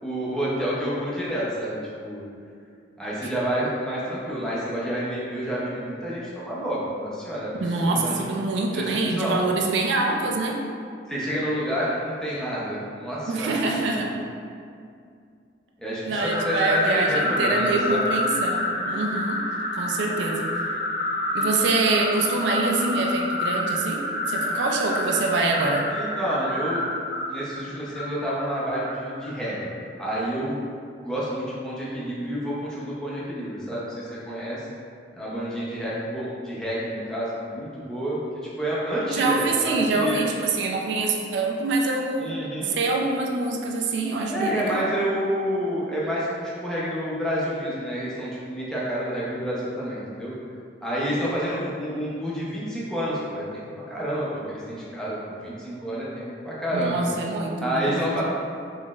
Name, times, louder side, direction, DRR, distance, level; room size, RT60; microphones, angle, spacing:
voice 1, 0.0-2.2 3.0-8.2 8.7-9.4 11.1-13.7 15.8-18.1 24.5-24.6 25.9-26.8 27.3-29.7 30.0-30.6 31.0-34.6 35.1-38.2 38.6-40.2 42.2-42.7 44.3-50.3 50.8-53.6 53.9-57.0 57.6-58.2, equal, 5° left, -7 dB, 0.6 m, -29 dB
voice 2, 7.6-10.6 13.3-14.1 16.0-19.4 19.7-20.8 21.3-25.9 39.1-42.4 42.6-44.9 56.7-58.1, right 3 dB, 85° right, 1 dB, 0.4 m, -25 dB
sound 1, 16.1-29.5, left 1 dB, 80° left, 0.6 m, -28 dB
3.9 x 3.1 x 2.4 m, 2.3 s
head